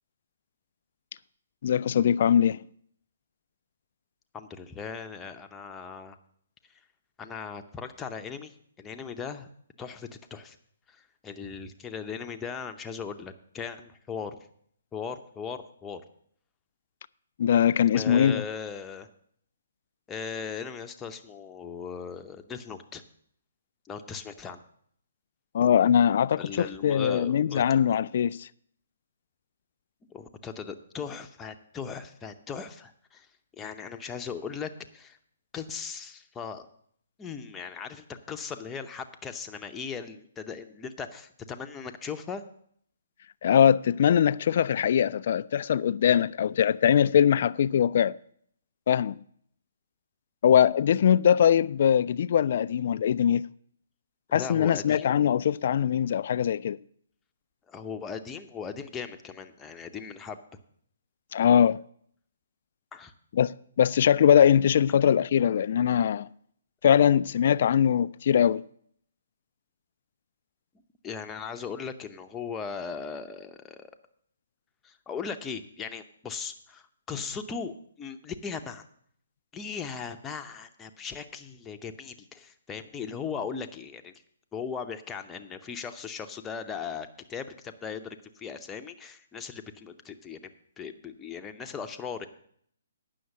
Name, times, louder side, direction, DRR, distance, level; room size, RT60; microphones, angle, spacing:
voice 1, 1.6-2.6 17.4-18.4 25.5-28.5 43.4-48.2 48.9-49.2 50.4-53.4 54.3-56.8 61.3-61.8 63.3-66.3 66.8-68.6, left 9 dB, 50° left, 0.3 m, -22 dB
voice 2, 4.3-6.2 7.2-9.5 9.8-10.6 10.9-14.4 14.9-16.0 17.9-19.1 20.1-23.0 23.9-24.6 26.4-27.8 30.1-33.3 33.5-35.2 35.5-36.7 37.2-42.4 54.3-55.1 57.7-60.4 62.9-63.1 71.0-73.9 74.8-78.8 79.5-84.1 84.5-90.5 90.8-92.3, left 6 dB, 15° left, 0.7 m, -38 dB
9.4 x 6.4 x 7.6 m
hypercardioid pair, 140°, 0 cm